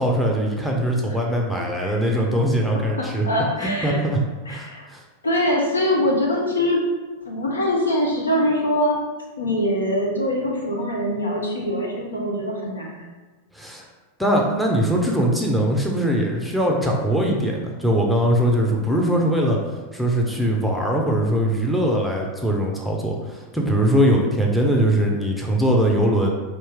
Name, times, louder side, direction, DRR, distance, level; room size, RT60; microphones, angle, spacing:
voice 1, 0.0-3.3 3.6-4.2 4.5-5.0 13.5-13.8 14.2-19.6 19.9-26.3, equal, ahead, -1 dB, 0.6 m, -21 dB
voice 2, 2.7-4.0 4.5-4.8 5.2-6.8 7.3-9.0 9.4-13.1, left 1 dB, 75° left, -1 dB, 0.8 m, -23 dB
4.4 x 2.7 x 3.6 m, 1.3 s
figure-of-eight pair, 90°, 0 cm